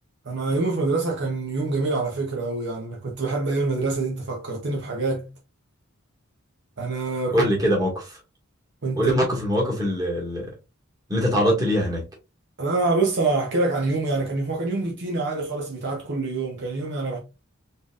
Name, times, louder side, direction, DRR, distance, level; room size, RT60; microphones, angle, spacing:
voice 1, 0.2-5.3 6.8-7.5 8.8-9.3 12.6-17.2, right 3 dB, 55° right, 0.8 m, -26 dB
voice 2, 7.3-8.2 9.0-10.5 11.1-12.0, equal, 20° right, 1.8 m, -23 dB
4.3 x 3.5 x 2.4 m
head